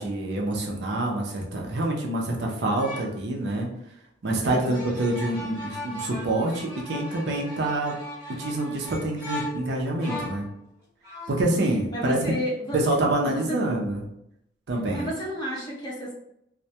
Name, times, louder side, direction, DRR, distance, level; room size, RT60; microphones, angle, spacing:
voice 1, 0.0-3.7 4.2-7.9 8.4-10.5 11.3-12.2 12.7-14.0 14.7-15.1, right 2 dB, 65° right, -1 dB, 0.5 m, -26 dB
sound 1, 2.8-3.2 4.6-10.5 11.0-11.4, left 1 dB, 15° right, 0.9 m, -38 dB
voice 2, 4.4-4.9 11.9-12.8 13.3-13.7 14.9-16.1, equal, 25° left, -4 dB, 0.6 m, -31 dB
2.1 x 2.1 x 2.7 m, 0.78 s
head